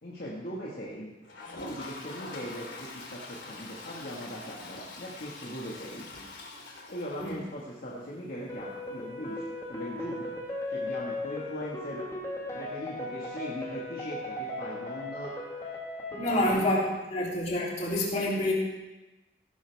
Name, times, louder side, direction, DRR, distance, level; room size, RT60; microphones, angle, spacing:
voice 1, 0.0-1.1 1.6-6.1 6.9-10.3 10.7-12.1 12.5-15.4 16.1-16.7, equal, 55° left, -6 dB, 2.0 m, -40 dB
Toilet flush, 1.2-7.9 8.3-8.4 8.6-8.7 8.9-9.0 11.6-11.7 13.0-13.1, left 2 dB, 80° left, 3.0 m, -44 dB
sound 1, 8.5-16.5, left 2 dB, 20° left, 1.9 m, -37 dB
voice 2, 16.2-16.8 17.1-18.5, left 1 dB, 40° left, -5 dB, 3.4 m, -27 dB
17.5 x 11.5 x 3.6 m, 1.1 s
head